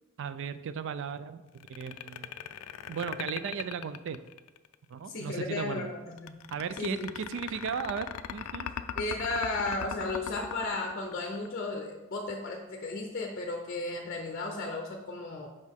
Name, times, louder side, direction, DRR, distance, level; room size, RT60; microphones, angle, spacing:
voice 1, 0.2-1.4 1.7-2.3 2.9-4.2 4.9-5.9 6.5-8.7, right 6 dB, 60° right, 12 dB, 0.3 m, -36 dB
sound 1, 1.6-4.7 6.2-11.7, left 9 dB, 85° left, 0.4 m, -39 dB
voice 2, 5.1-6.4 6.8-7.1 9.0-15.5, left 2 dB, 40° left, 2 dB, 0.6 m, -34 dB
6.3 x 5.1 x 3.6 m, 1.1 s
head